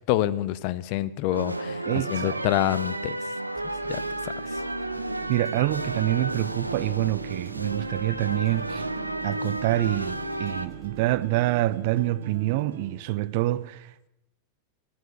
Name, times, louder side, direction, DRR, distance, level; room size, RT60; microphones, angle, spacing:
voice 1, 0.1-3.2 3.9-4.6, left 14 dB, 45° left, 0.6 m, -27 dB
sound 1, 1.3-10.7, right 1 dB, 85° right, 0.7 m, -32 dB
voice 2, 1.9-2.4 5.3-8.9 9.2-14.1, right 16 dB, 50° right, 0.6 m, -26 dB
sound 2, 3.6-11.2, right 3 dB, 20° right, 2.1 m, -50 dB
sound 3, 5.0-13.0, right 8 dB, 65° right, 1.0 m, -42 dB
15.0 x 9.2 x 8.4 m
figure-of-eight pair, 90°, 0 cm